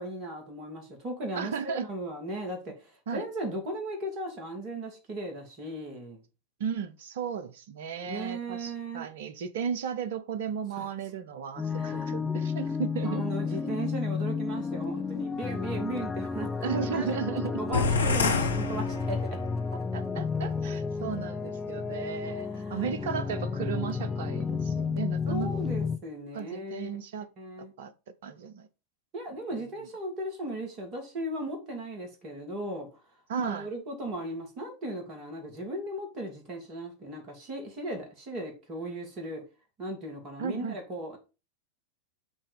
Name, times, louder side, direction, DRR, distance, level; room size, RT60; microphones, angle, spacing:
voice 1, 0.0-6.2 8.0-9.1 10.7-10.9 11.6-12.1 13.0-17.1 17.6-19.2 22.2-22.9 25.3-26.9 27.4-27.7 29.1-32.9 33.4-39.4 39.8-41.2, right 1 dB, 35° right, 2.0 m, -37 dB
voice 2, 1.3-1.9 3.1-3.2 6.6-13.2 13.6-13.7 16.6-17.6 19.9-25.5 26.3-27.3 27.8-27.9 28.2-28.7 33.3-33.7 40.4-40.8, right 7 dB, 55° right, 0.7 m, -35 dB
sound 1, 11.6-26.0, left 5 dB, 15° left, 0.8 m, -32 dB
sound 2, 17.7-19.6, left 4 dB, 70° left, 0.8 m, -28 dB
8.1 x 2.9 x 5.0 m
figure-of-eight pair, 90°, 0 cm